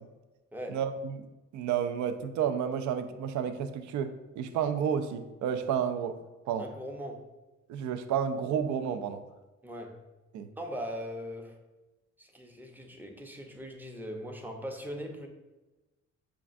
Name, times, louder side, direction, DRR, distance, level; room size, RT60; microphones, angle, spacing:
voice 1, 0.7-1.2 1.5-6.2 6.5-6.7 7.7-9.2 10.3-10.5, right 8 dB, 70° right, 9 dB, 0.4 m, -31 dB
voice 2, 6.6-7.3 9.6-10.0 10.6-11.6 12.2-15.3, equal, 5° right, 2 dB, 0.6 m, -40 dB
6.0 x 2.4 x 2.5 m, 1.1 s
cardioid pair, 90°, 30 cm